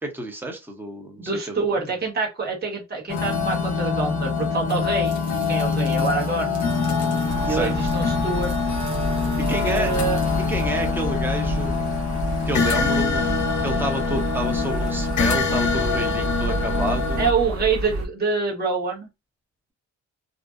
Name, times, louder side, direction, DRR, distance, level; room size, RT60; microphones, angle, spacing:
voice 1, 0.0-1.8 7.5-7.9 9.5-9.9 10.5-11.7 12.5-13.3 13.6-17.2, right 1 dB, 5° right, 0.7 m, -30 dB
voice 2, 1.2-5.2 5.5-6.6 7.4-8.5 9.6-10.2 17.2-19.1, right 4 dB, 30° right, 1.2 m, -26 dB
grandfather's house clock, 3.1-17.3, left 5 dB, 70° left, 0.6 m, -24 dB
sound 1, 5.0-11.4, right 6 dB, 90° right, 0.8 m, -40 dB
sound 2, 7.3-18.1, right 1 dB, 50° right, 0.7 m, -30 dB
2.5 x 2.0 x 2.4 m
cardioid pair, 90°, 30 cm